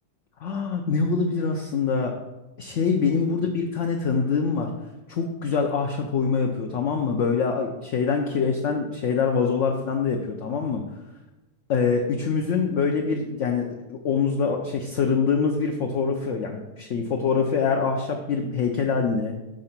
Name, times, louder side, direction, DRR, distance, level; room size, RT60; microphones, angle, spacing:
voice 1, 0.4-2.1 2.6-4.7 5.1-10.8 11.7-19.3, left 5 dB, 80° left, 3 dB, 0.6 m, -24 dB
5.2 x 3.8 x 5.7 m, 1.1 s
omnidirectional pair, 1.9 m